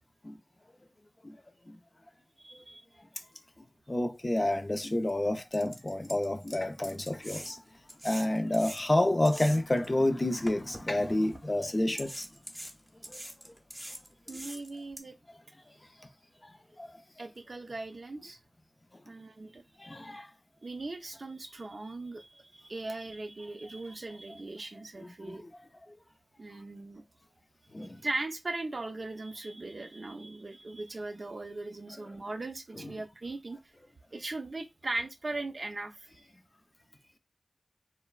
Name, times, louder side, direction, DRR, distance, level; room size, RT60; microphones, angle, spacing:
voice 1, 2.4-2.8 14.3-15.2 17.2-18.4 19.1-19.6 20.6-25.4 26.4-27.0 27.8-33.6 34.1-36.1, right 2 dB, 60° right, 0.4 m, -39 dB
voice 2, 3.9-7.6 8.0-12.3 13.1-13.2 16.4-16.9 19.8-20.3 25.0-25.5 27.7-28.0, left 1 dB, 35° left, 0.4 m, -29 dB
sound 1, 4.5-4.6 5.1-5.2 5.5-9.9 10.5-11.4 12.0-15.0, equal, 5° right, 0.7 m, -44 dB
3.1 x 2.2 x 2.3 m
wide cardioid pair, 50°, 0 cm